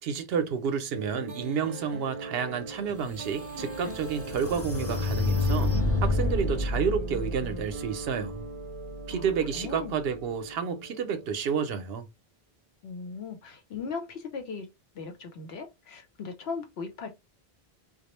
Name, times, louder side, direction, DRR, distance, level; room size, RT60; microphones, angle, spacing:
voice 1, 0.0-5.7 6.0-8.4 9.1-12.1, right 7 dB, 75° right, 0.8 m, -30 dB
sound 1, 0.9-11.5, right 3 dB, 45° right, 0.6 m, -40 dB
sound 2, 2.7-2.8 3.4-6.5, left 6 dB, 25° left, 0.3 m, -30 dB
sound 3, 3.0-9.8, equal, 60° left, 0.7 m, -33 dB
voice 2, 9.1-10.0 12.8-14.7 14.9-17.1, left 5 dB, 80° left, 1.0 m, -38 dB
2.3 x 2.0 x 2.9 m
omnidirectional pair, 1.0 m